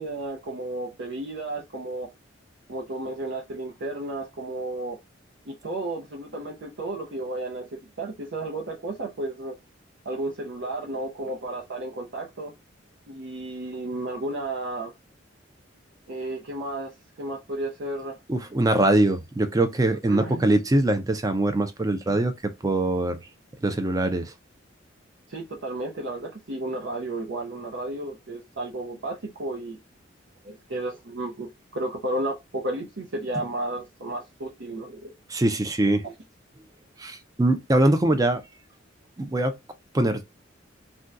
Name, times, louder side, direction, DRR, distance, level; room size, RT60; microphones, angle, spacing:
voice 1, 0.0-2.1 2.7-5.0 5.5-9.6 10.0-12.5 13.1-14.9 16.1-16.9 17.2-18.2 20.1-20.4 25.3-29.8 30.4-35.2 36.0-36.1, right 2 dB, 65° right, 0.7 m, -33 dB
voice 2, 18.3-23.2 23.6-24.3 35.3-36.0 37.0-38.4 39.2-39.5 39.9-40.2, right 1 dB, 20° right, 0.4 m, -22 dB
2.7 x 2.2 x 3.5 m
head